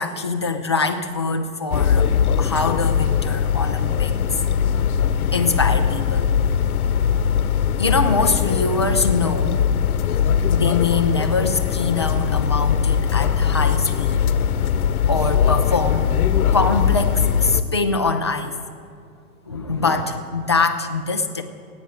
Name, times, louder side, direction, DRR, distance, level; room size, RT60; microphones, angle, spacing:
voice 1, 0.0-2.1 2.4-4.2 5.3-6.3 7.8-9.6 10.5-14.2 15.1-16.2 16.5-18.5 19.5-21.4, left 4 dB, 20° left, 5 dB, 0.3 m, -23 dB
sound 1, 1.7-17.6, left 8 dB, 70° left, 1.0 m, -20 dB
16.0 x 9.2 x 9.8 m, 2.3 s
hypercardioid pair, 150°, 45 cm